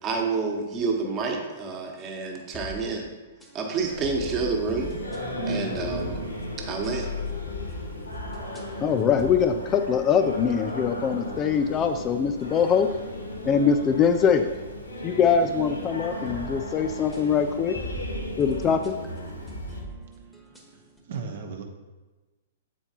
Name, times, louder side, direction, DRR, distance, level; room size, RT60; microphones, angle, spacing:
voice 1, 0.0-3.1 3.5-5.0 5.4-6.2 6.6-7.1, right 4 dB, 25° right, 1 dB, 1.1 m, -29 dB
sound 1, 2.3-21.0, right 1 dB, 5° left, 1.0 m, -43 dB
Singing, 3.8-19.8, left 1 dB, 80° left, 1.2 m, -35 dB
voice 2, 8.8-12.9 13.5-14.5 15.0-17.8 18.4-18.9, left 7 dB, 25° left, 7 dB, 0.3 m, -23 dB
voice 3, 20.2-21.6, right 5 dB, 55° right, 3 dB, 0.9 m, -38 dB
7.9 x 4.4 x 2.9 m, 1.2 s
figure-of-eight pair, 110°, 0 cm